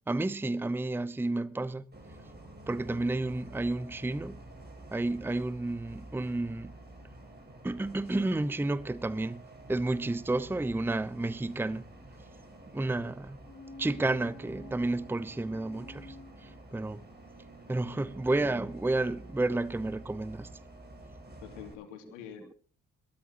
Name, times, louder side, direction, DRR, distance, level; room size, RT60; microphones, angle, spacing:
voice 1, 0.1-1.9 2.7-4.4 4.9-6.7 7.6-9.4 9.7-11.8 12.7-13.4 13.8-16.1 16.4-17.0 17.7-20.5, right 2 dB, 5° right, 0.8 m, -31 dB
Bus, 1.9-21.7, right 1 dB, 25° right, 7.2 m, -50 dB
sound 1, 13.4-17.2 17.6-17.7, left 2 dB, 40° left, 4.1 m, -50 dB
voice 2, 17.8-18.1 21.4-22.5, left 8 dB, 70° left, 2.9 m, -47 dB
21.5 x 17.5 x 3.0 m
figure-of-eight pair, 45°, 38 cm